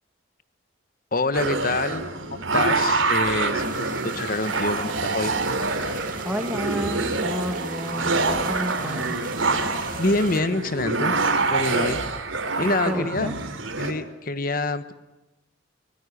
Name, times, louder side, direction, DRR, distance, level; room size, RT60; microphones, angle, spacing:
voice 1, 1.1-5.3 10.0-12.0 12.6-13.3 13.8-14.9, left 2 dB, 45° left, 13 dB, 1.3 m, -26 dB
sound 1, 1.3-13.9, right 3 dB, 90° right, 3.2 m, -26 dB
sound 2, 3.6-10.4, right 4 dB, 45° right, 3.0 m, -38 dB
voice 2, 6.2-9.2 12.8-13.3, equal, 5° right, 2 dB, 1.8 m, -31 dB
24.5 x 19.0 x 9.8 m, 1.0 s
head